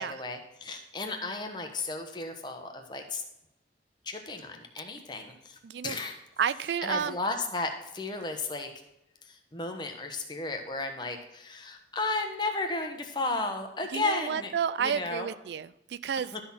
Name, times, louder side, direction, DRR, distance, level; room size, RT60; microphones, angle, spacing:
voice 1, 0.0-3.2 4.0-6.2 6.8-8.7 9.2-14.5 14.8-15.3 16.3-16.4, left 2 dB, 25° left, 4 dB, 1.1 m, -34 dB
voice 2, 5.6-6.0 6.4-7.2 13.9-16.3, right 7 dB, 75° right, 16 dB, 0.3 m, -31 dB
12.0 x 4.2 x 5.7 m, 0.86 s
head